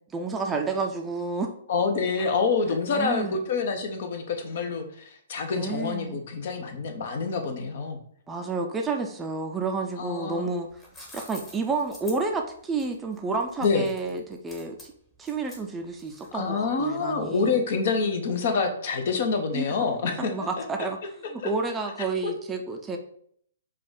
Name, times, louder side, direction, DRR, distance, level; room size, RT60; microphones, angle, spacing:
voice 1, 0.1-1.5 2.2-2.3 2.9-3.4 5.6-6.2 8.3-10.7 11.1-14.9 15.2-17.6 19.5-19.7 20.2-23.0, right 3 dB, 15° right, 3 dB, 0.5 m, -30 dB
voice 2, 1.7-8.0 10.0-10.5 13.6-13.8 16.3-20.3 21.4-21.5 22.2-22.3, left 4 dB, 50° left, 6 dB, 0.8 m, -27 dB
sound 1, 10.6-16.5, left 1 dB, 15° left, 1.1 m, -47 dB
4.7 x 2.4 x 3.7 m, 0.63 s
figure-of-eight pair, 125°, 0 cm